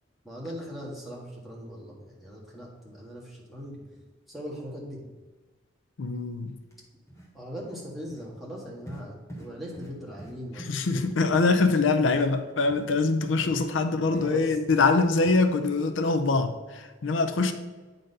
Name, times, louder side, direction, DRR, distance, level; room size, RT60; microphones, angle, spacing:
voice 1, 0.2-3.8 4.3-5.1 7.3-11.1 13.4-14.4, equal, ahead, -5 dB, 1.7 m, -40 dB
voice 2, 6.0-6.5 10.6-17.5, left 3 dB, 80° left, 8 dB, 0.5 m, -24 dB
sound 1, 6.6-6.7 7.1-7.3 7.6-7.8 8.1-8.2 8.9-9.0 9.3-9.5 9.7-9.9 10.2-10.3 10.6-11.8 12.1-12.3 12.7-12.8 13.5-13.6 14.0-14.3 14.7-14.8 15.2-15.4, right 1 dB, 15° left, 1.4 m, -43 dB
9.0 x 4.0 x 5.3 m, 1.3 s
head